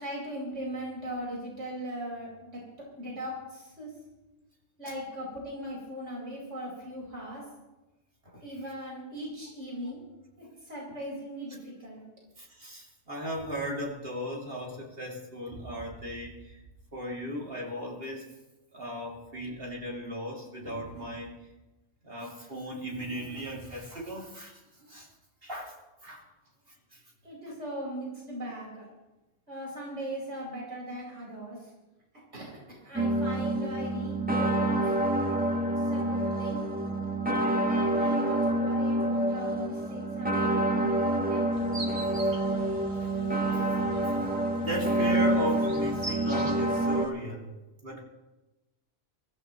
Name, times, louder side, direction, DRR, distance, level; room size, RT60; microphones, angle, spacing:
voice 1, 0.0-2.6 3.0-3.9 4.8-7.4 8.4-10.0 10.4-12.0 27.2-28.9 29.5-31.7 32.3-34.9 35.7-36.6 37.3-41.5, equal, 70° right, -4 dB, 5.2 m, -39 dB
voice 2, 12.4-16.6 16.9-18.3 18.7-21.3 22.0-25.1 25.4-25.7 26.0-26.2 26.9-27.0 43.0-43.1 44.0-44.1 44.6-47.5 47.8-48.0, equal, 50° right, -2 dB, 2.6 m, -36 dB
sound 1, 33.0-47.1, right 1 dB, 5° right, 1.5 m, -27 dB
sound 2, 41.5-47.1, right 2 dB, 30° right, 1.5 m, -44 dB
23.5 x 15.0 x 3.0 m, 1.0 s
omnidirectional pair, 1.3 m